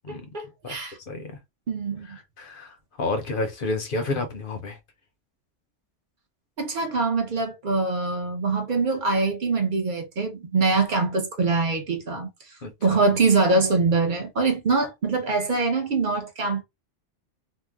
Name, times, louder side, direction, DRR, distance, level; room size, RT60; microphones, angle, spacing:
voice 1, 0.1-1.0 1.7-2.2 6.6-12.3 12.8-16.6, right 3 dB, 50° right, 0.7 m, -24 dB
voice 2, 0.6-1.4 2.0-4.8 12.6-13.0, left 3 dB, 55° left, 0.8 m, -31 dB
2.7 x 2.1 x 3.4 m
omnidirectional pair, 1.2 m